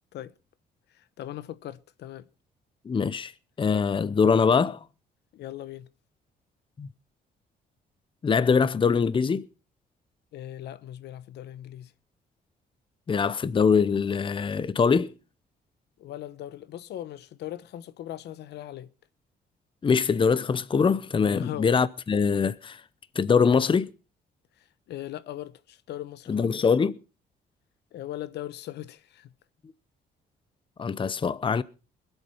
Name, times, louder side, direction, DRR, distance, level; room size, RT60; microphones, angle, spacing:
voice 1, 0.9-2.3 5.3-5.9 10.3-11.9 16.0-18.9 21.3-21.7 24.9-26.5 27.9-29.3, left 12 dB, 80° left, 0.9 m, -39 dB
voice 2, 2.9-3.3 3.6-4.8 6.8-6.9 8.2-9.5 13.1-15.1 19.8-22.8 23.2-23.9 26.3-27.0 30.8-31.6, left 5 dB, 30° left, 0.7 m, -23 dB
21.0 x 8.1 x 5.6 m
cardioid pair, 100°, 17 cm